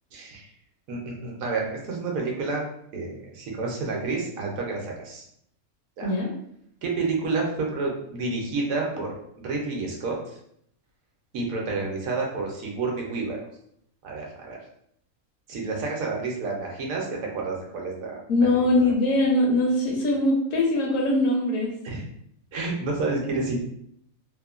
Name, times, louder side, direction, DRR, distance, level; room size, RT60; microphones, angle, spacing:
voice 1, 0.1-0.5 0.9-2.7 2.9-5.2 6.0-6.1 6.8-9.1 9.4-10.4 11.3-13.4 14.0-14.6 15.5-18.2 18.7-18.8 21.8-22.0 22.5-23.6, right 3 dB, 70° right, -1 dB, 1.0 m, -29 dB
voice 2, 18.3-21.7, left 1 dB, 70° left, -2 dB, 1.0 m, -22 dB
2.9 x 2.1 x 2.3 m, 0.71 s
omnidirectional pair, 1.5 m